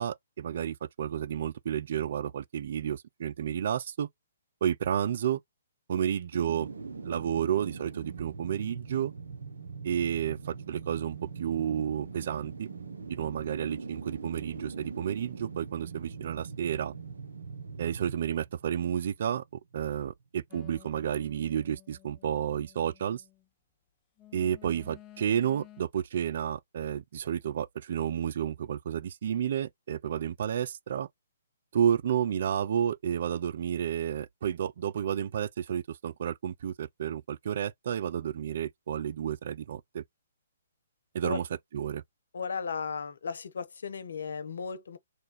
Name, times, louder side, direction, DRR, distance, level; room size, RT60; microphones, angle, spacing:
voice 1, 0.0-4.1 4.6-5.4 5.9-6.7 7.0-9.1 9.8-12.7 13.1-16.9 17.8-19.4 19.7-23.2 24.3-31.1 31.7-40.0 41.1-41.5 41.7-42.0, right 9 dB, 55° right, 0.3 m, -31 dB
sound 1, 6.3-19.4 19.7-19.8, right 5 dB, 80° right, 0.9 m, -42 dB
sound 2, 20.5-23.5 24.2-25.8, left 13 dB, 25° left, 0.7 m, -54 dB
voice 2, 42.3-45.0, left 5 dB, 70° left, 0.7 m, -35 dB
3.1 x 2.3 x 4.1 m
hypercardioid pair, 140°, 0 cm